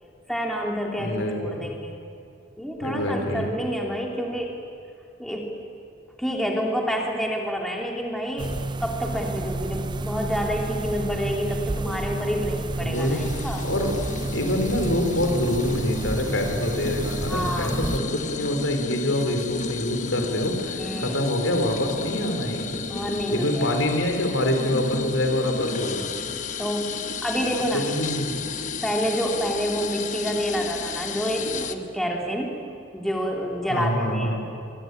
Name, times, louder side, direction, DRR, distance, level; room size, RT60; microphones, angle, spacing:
voice 1, 0.3-2.0 2.6-4.5 5.2-5.5 6.2-13.7 17.3-17.8 20.8-21.2 22.9-23.7 26.6-27.9 28.8-32.7 32.9-34.4, equal, ahead, 0 dB, 3.1 m, -28 dB
voice 2, 1.0-1.6 2.8-3.5 12.8-13.2 13.6-14.0 14.3-22.7 23.3-26.1 27.7-28.3 33.7-34.5, left 1 dB, 85° left, 4 dB, 4.3 m, -25 dB
sound 1, 8.4-18.0, right 2 dB, 25° right, 0.6 m, -30 dB
sound 2, 12.9-31.7, left 4 dB, 40° left, 1.2 m, -33 dB
25.0 x 22.5 x 9.7 m, 2.4 s
head